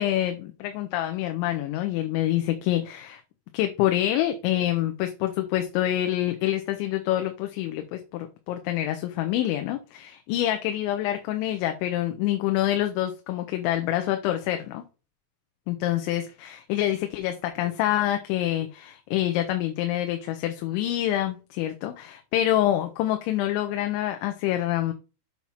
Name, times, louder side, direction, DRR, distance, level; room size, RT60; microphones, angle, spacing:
voice 1, 0.0-3.2 3.5-14.8 15.7-24.9, left 13 dB, 90° left, 3.2 m, -26 dB
7.7 x 4.3 x 5.7 m
omnidirectional pair, 5.2 m